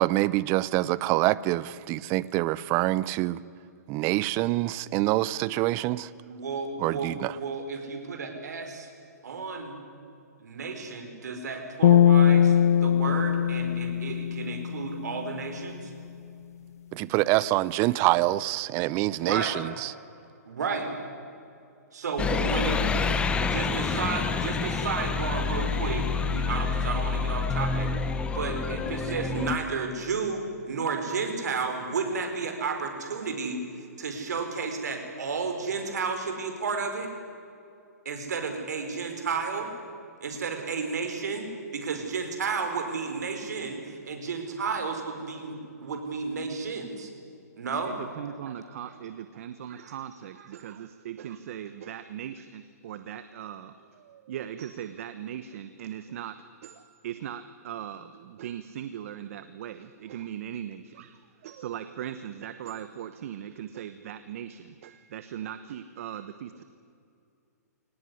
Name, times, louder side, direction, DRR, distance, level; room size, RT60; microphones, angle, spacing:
voice 1, 0.0-3.4 3.9-6.1 6.8-7.4 16.9-19.9, right 17 dB, 25° right, 0.6 m, -26 dB
voice 2, 6.2-8.9 9.2-9.8 10.4-15.9 19.2-19.6 20.5-21.0 21.9-27.9 28.3-33.6 34.0-37.1 38.0-39.7 40.2-47.1 47.6-48.0 48.4-48.5, right 4 dB, 75° right, 4.9 m, -32 dB
sound 1, 11.8-15.2, left 9 dB, 60° left, 0.9 m, -21 dB
sound 2, 22.2-29.6, left 5 dB, 10° left, 1.1 m, -28 dB
voice 3, 47.8-66.6, right 10 dB, 50° right, 1.1 m, -39 dB
23.0 x 18.5 x 9.9 m
hypercardioid pair, 145°, 9 cm